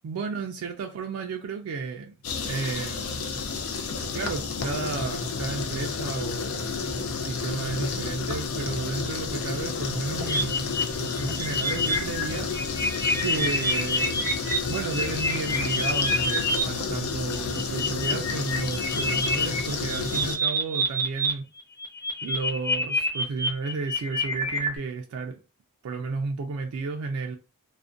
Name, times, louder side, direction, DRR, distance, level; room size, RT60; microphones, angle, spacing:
voice 1, 0.0-2.1 2.4-3.4 4.1-12.9 13.2-14.3 14.7-21.5 22.2-25.4 25.8-27.4, right 4 dB, 85° right, 0.3 m, -33 dB
sound 1, 2.2-20.4, left 5 dB, 90° left, 0.4 m, -31 dB
sound 2, 10.3-16.6 17.3-21.3 21.6-24.8, left 1 dB, 15° left, 0.6 m, -27 dB
2.4 x 2.1 x 2.5 m
head